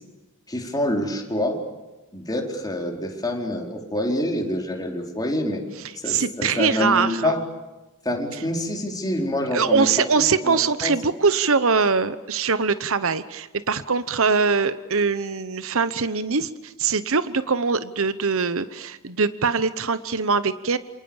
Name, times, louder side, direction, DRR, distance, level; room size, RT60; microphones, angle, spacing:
voice 1, 0.5-1.6 2.1-5.6 6.0-7.4 8.0-9.9 10.4-10.9, left 1 dB, 20° left, 1 dB, 4.4 m, -26 dB
voice 2, 5.8-7.3 8.3-8.4 9.5-20.8, right 5 dB, 65° right, 13 dB, 1.0 m, -22 dB
28.5 x 28.0 x 7.2 m, 1.1 s
head